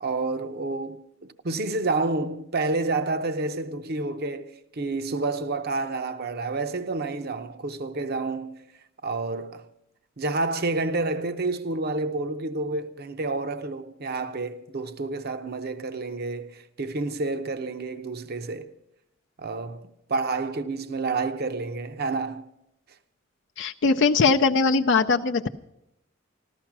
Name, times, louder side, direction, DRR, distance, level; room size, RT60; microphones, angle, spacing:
voice 1, 0.0-8.6 9.0-9.7 10.2-18.7 19.4-22.5, right 3 dB, 50° right, 0.7 m, -29 dB
voice 2, 23.6-25.5, left 4 dB, 65° left, 0.5 m, -21 dB
14.5 x 13.0 x 6.0 m
head